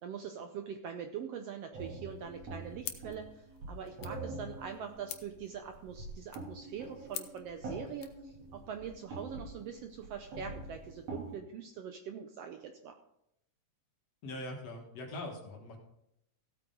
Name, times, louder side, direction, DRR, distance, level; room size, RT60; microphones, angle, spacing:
voice 1, 0.0-12.9, right 7 dB, 75° right, 6 dB, 1.5 m, -43 dB
sound 1, 1.7-11.4, right 2 dB, 55° right, 4.1 m, -45 dB
sound 2, 2.8-8.2, left 11 dB, 85° left, 2.4 m, -48 dB
voice 2, 14.2-15.8, left 1 dB, 60° left, 1 dB, 2.7 m, -42 dB
15.5 x 8.6 x 3.9 m, 0.79 s
omnidirectional pair, 3.4 m